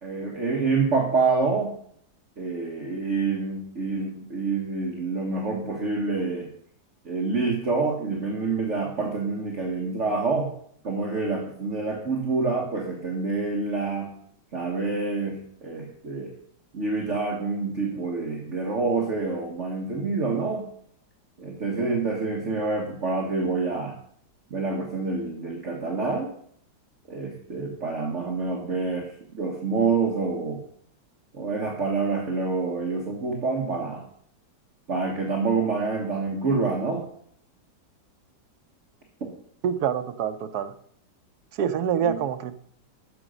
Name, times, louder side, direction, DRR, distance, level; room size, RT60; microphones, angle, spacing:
voice 1, 0.0-1.8 2.4-6.5 7.1-10.5 10.8-14.1 14.5-16.3 16.7-20.7 21.4-24.0 24.5-26.3 27.1-30.6 31.3-34.0 34.9-37.0 39.2-39.3 42.0-42.2, right 4 dB, 40° right, -1 dB, 1.6 m, -27 dB
voice 2, 39.6-40.7 41.5-42.6, right 8 dB, 65° right, 9 dB, 1.1 m, -26 dB
10.0 x 6.9 x 6.4 m, 0.64 s
omnidirectional pair, 2.0 m